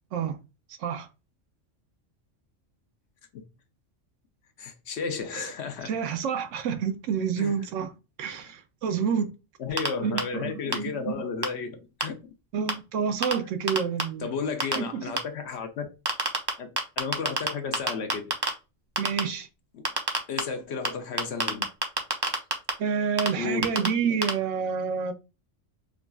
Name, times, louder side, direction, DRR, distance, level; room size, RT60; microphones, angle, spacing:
voice 1, 4.6-5.9 7.4-7.5 9.6-12.1 14.2-15.9 16.6-18.4 19.7-19.9 20.3-21.7 23.3-23.8, left 5 dB, 65° left, 0.9 m, -33 dB
voice 2, 5.8-7.9 8.2-9.3 10.0-10.9 12.5-14.3 14.8-15.0 19.0-19.5 22.8-25.1, right 6 dB, 85° right, 1.0 m, -28 dB
sound 1, 9.8-9.9 10.2-10.3 10.7-10.8 11.4-11.5 12.0-12.1 12.7-12.8 13.2-13.3 13.7-14.0 14.6-14.8 15.2-15.3 16.1-16.5 16.8-17.5 17.7-18.5 19.0-19.2 19.8-20.4 20.8-20.9 21.2-22.7 23.2-23.3 23.6-23.9 24.2-24.3, right 2 dB, 30° right, 0.5 m, -24 dB
4.7 x 2.2 x 2.3 m
omnidirectional pair, 1.2 m